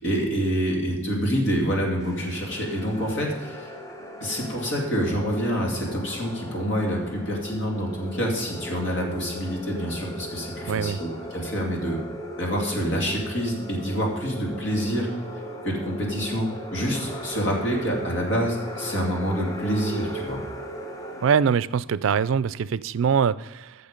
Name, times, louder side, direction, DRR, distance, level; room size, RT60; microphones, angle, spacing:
voice 1, 0.0-3.7 4.2-12.0 12.4-15.1 15.6-20.4, equal, 60° left, 0 dB, 2.7 m, -27 dB
sound 1, 2.0-21.3, equal, 15° left, 1.0 m, -37 dB
voice 2, 10.7-11.0 21.2-23.7, right 7 dB, 70° right, 17 dB, 0.4 m, -23 dB
14.5 x 6.8 x 5.1 m, 0.96 s
head